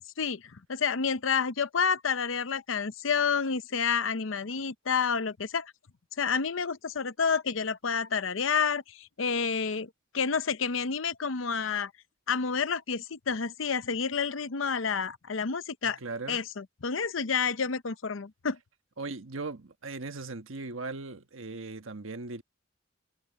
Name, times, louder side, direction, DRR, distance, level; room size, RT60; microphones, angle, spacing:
voice 1, 0.2-5.7 6.2-11.9 12.3-16.0 16.3-18.6, left 6 dB, 75° left, 0.8 m, -29 dB
voice 2, 15.8-16.4 19.0-22.4, right 3 dB, 85° right, 1.3 m, -38 dB
head